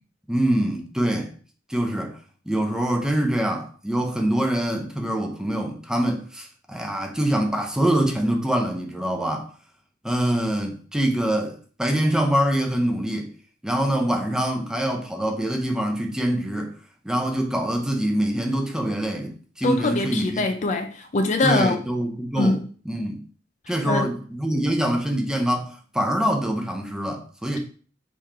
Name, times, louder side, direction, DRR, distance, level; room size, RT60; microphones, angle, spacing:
voice 1, 0.3-1.3 1.7-2.2 2.5-9.5 10.0-13.3 13.6-16.7 17.0-20.4 21.4-22.6 22.9-23.2 23.7-27.6, right 1 dB, 5° right, 0.6 m, -24 dB
voice 2, 19.6-21.8 22.3-22.6 23.8-24.1, left 2 dB, 40° left, 0.4 m, -23 dB
3.6 x 2.9 x 4.6 m
head